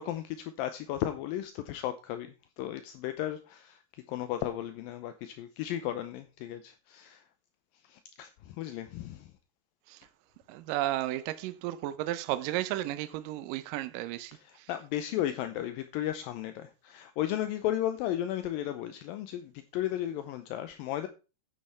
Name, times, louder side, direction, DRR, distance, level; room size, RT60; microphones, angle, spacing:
voice 1, 0.0-7.2 7.8-9.3 14.3-21.1, left 12 dB, 80° left, 2.2 m, -35 dB
voice 2, 10.5-14.7, right 15 dB, 85° right, 1.9 m, -33 dB
9.7 x 9.2 x 4.3 m
omnidirectional pair, 4.7 m